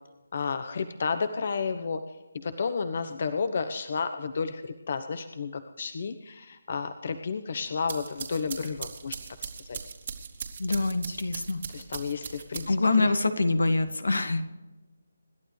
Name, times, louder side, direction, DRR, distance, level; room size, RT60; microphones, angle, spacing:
voice 1, 0.3-2.0 2.3-9.8 11.7-13.1, left 5 dB, 50° left, 9 dB, 1.0 m, -32 dB
sound 1, 7.7-13.0, right 6 dB, 45° right, 2.3 m, -40 dB
voice 2, 10.6-11.6 12.7-14.4, left 3 dB, 80° left, 8 dB, 1.9 m, -25 dB
27.0 x 11.5 x 3.3 m, 1.2 s
figure-of-eight pair, 160°, 0 cm